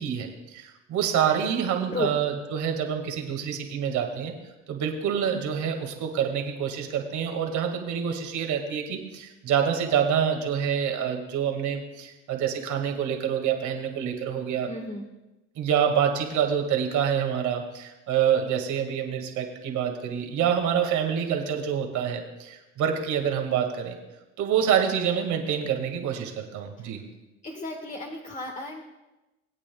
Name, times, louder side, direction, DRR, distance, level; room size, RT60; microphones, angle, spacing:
voice 1, 0.0-4.3 4.7-14.7 15.6-24.0 24.4-27.0, right 8 dB, 60° right, 4 dB, 2.0 m, -27 dB
voice 2, 14.7-15.1 26.8-26.9 27.4-28.8, left 2 dB, 25° left, 0 dB, 1.6 m, -34 dB
21.5 x 8.6 x 2.3 m, 1.0 s
hypercardioid pair, 70°, 33 cm